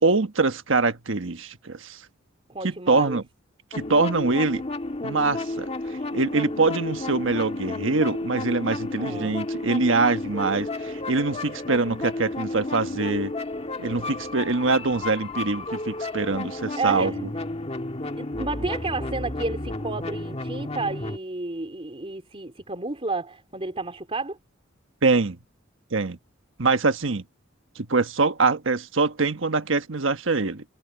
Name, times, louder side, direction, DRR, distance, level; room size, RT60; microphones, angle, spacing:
voice 1, 0.0-2.0 2.6-3.2 3.7-4.6 5.0-5.7 6.1-13.3 13.8-17.1 25.0-25.4 25.9-26.2 26.6-27.2 27.8-30.6, right 3 dB, 75° right, 1.4 m, -24 dB
voice 2, 2.5-3.2 9.0-9.4 14.4-14.5 16.8-17.2 18.2-24.4, right 3 dB, 30° right, 3.3 m, -31 dB
sound 1, 3.7-21.2, left 2 dB, 30° left, 1.7 m, -32 dB
head